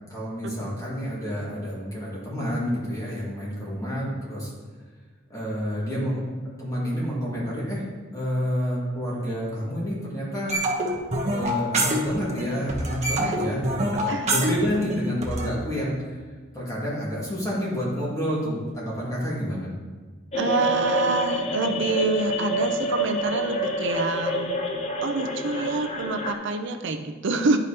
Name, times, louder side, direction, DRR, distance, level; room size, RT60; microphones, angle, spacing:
voice 1, 0.1-4.5 5.3-6.2 6.6-7.8 8.1-10.5 11.3-16.0 16.5-19.7, equal, 20° left, -6 dB, 2.1 m, -29 dB
sound 1, 10.5-12.4 12.7-15.5, right 1 dB, 35° right, 1.0 m, -25 dB
sound 2, 20.3-26.3, equal, 35° left, 0.7 m, -27 dB
voice 2, 20.3-24.5 25.0-27.6, right 3 dB, 65° right, 6 dB, 0.6 m, -27 dB
10.5 x 4.9 x 2.9 m, 1.4 s
head